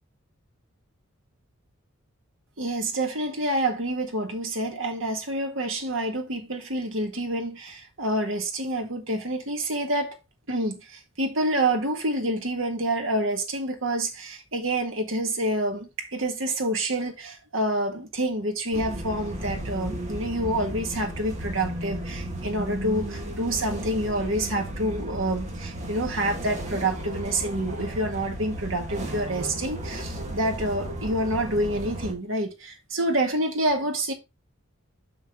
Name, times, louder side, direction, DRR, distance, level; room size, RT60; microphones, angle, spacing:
voice 1, 2.6-10.2 10.5-34.1, right 1 dB, 65° right, 1.8 m, -28 dB
sound 1, 18.7-32.1, right 1 dB, 35° right, 1.7 m, -34 dB
6.4 x 6.0 x 3.6 m
head